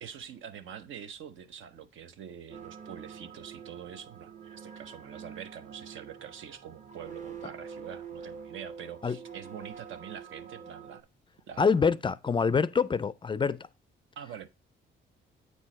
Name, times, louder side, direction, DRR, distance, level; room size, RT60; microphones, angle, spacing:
voice 1, 0.0-11.0 11.5-11.7 14.2-14.5, right 8 dB, 75° right, 0.8 m, -45 dB
sound 1, 2.5-11.0, right 6 dB, 40° right, 0.8 m, -46 dB
voice 2, 11.6-13.7, left 5 dB, 25° left, 0.4 m, -26 dB
8.1 x 4.5 x 4.2 m
cardioid pair, 90°, 20 cm